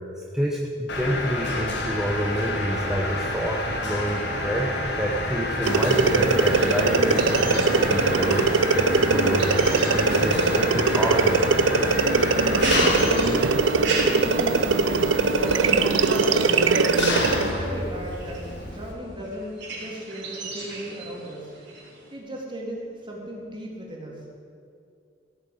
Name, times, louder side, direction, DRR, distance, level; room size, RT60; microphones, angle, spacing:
voice 1, 0.3-8.4 8.7-11.4, equal, 5° right, -2 dB, 1.1 m, -28 dB
Mechanisms, 0.9-18.9, left 1 dB, 65° left, 2.2 m, -29 dB
sound 1, 5.7-17.5, right 3 dB, 90° right, 0.7 m, -21 dB
sound 2, 6.8-22.1, right 3 dB, 65° right, 3.9 m, -38 dB
voice 2, 12.4-17.2 17.5-21.5 22.1-24.2, right 1 dB, 25° right, -3 dB, 3.4 m, -35 dB
16.0 x 9.0 x 7.9 m, 2.5 s
head